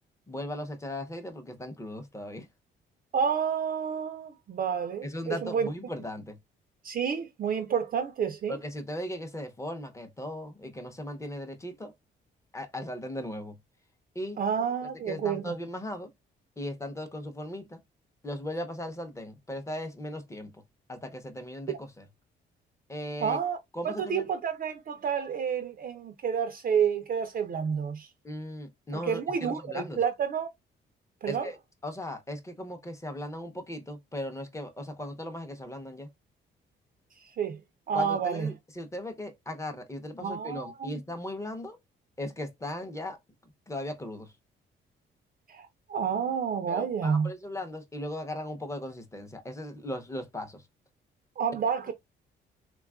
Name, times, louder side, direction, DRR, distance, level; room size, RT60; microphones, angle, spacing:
voice 1, 0.3-2.5 5.0-6.4 8.5-11.9 12.5-13.6 14.1-14.4 15.1-16.1 16.6-17.8 18.2-20.6 20.9-22.1 22.9-23.4 23.7-24.3 28.2-30.0 31.3-31.6 31.8-36.1 37.9-41.8 42.2-43.2 43.7-44.3 46.7-50.6, left 1 dB, 15° left, 0.7 m, -37 dB
voice 2, 3.1-5.7 6.8-8.6 14.4-15.5 23.2-23.6 23.8-28.1 28.9-30.5 31.2-31.5 37.2-37.6 37.9-38.5 40.2-41.0 45.5-47.3 51.4-51.9, right 7 dB, 45° right, 0.4 m, -29 dB
3.4 x 2.3 x 2.3 m
cardioid pair, 90°, 20 cm